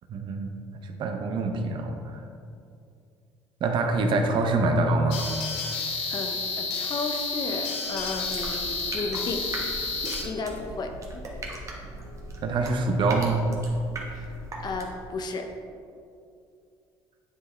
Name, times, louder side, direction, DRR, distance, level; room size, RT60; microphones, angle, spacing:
voice 1, 0.1-0.5 0.8-2.2 3.6-5.2 12.4-13.5, right 3 dB, 55° right, 4 dB, 0.7 m, -25 dB
sound 1, 5.1-10.2, left 4 dB, 85° left, 0.8 m, -31 dB
voice 2, 6.1-9.5 10.2-11.2 14.1-14.3 14.6-15.5, left 3 dB, 45° left, 4 dB, 0.7 m, -33 dB
sound 2, 7.8-15.1, right 2 dB, 30° right, 1.2 m, -39 dB
9.7 x 3.6 x 3.3 m, 2.5 s
cardioid pair, 90°, 10 cm